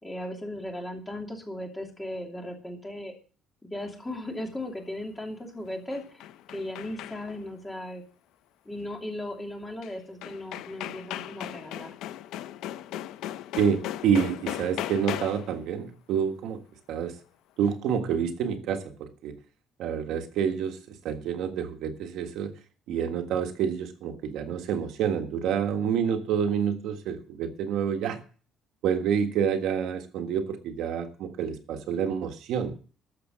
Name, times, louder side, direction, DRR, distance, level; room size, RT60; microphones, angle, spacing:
voice 1, 0.0-3.1 3.6-6.2 6.5-8.0 8.6-11.9, left 1 dB, 10° left, 1 dB, 2.8 m, -37 dB
sound 1, 5.7-7.5 9.8-9.9 10.2-15.6, left 12 dB, 85° left, 0.6 m, -37 dB
voice 2, 13.5-16.6 16.9-17.2 17.6-19.4 19.8-20.8 21.0-22.6 22.9-28.2 28.8-32.7, right 7 dB, 70° right, 6 dB, 1.6 m, -28 dB
13.5 x 6.7 x 7.5 m, 0.39 s
cardioid pair, 165°, 0 cm